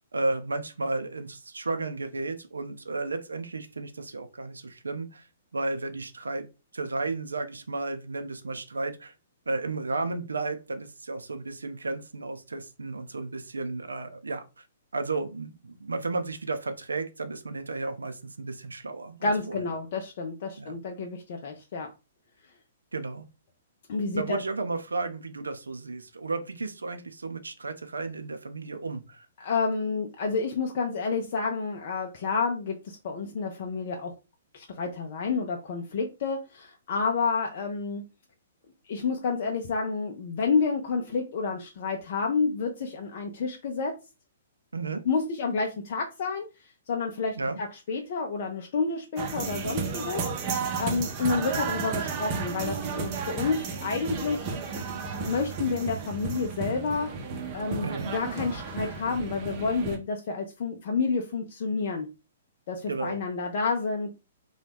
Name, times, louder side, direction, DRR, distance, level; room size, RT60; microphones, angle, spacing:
voice 1, 0.1-5.3 5.5-6.5 6.7-9.1 9.5-14.6 14.9-19.6 20.6-20.7 22.9-23.3 24.1-29.3 44.7-45.0 47.4-47.6 57.8-58.1 62.9-63.2, right 3 dB, 85° right, 9 dB, 0.5 m, -33 dB
voice 2, 19.2-21.9 23.9-24.4 29.4-34.1 34.5-38.0 38.9-43.9 45.0-46.5 46.9-50.2 50.5-54.4 55.2-57.1 57.5-62.1 62.7-64.1, left 4 dB, 50° left, 2 dB, 0.5 m, -29 dB
sound 1, 49.2-60.0, right 5 dB, 35° right, 0.7 m, -33 dB
2.9 x 2.3 x 3.4 m, 0.29 s
figure-of-eight pair, 120°, 0 cm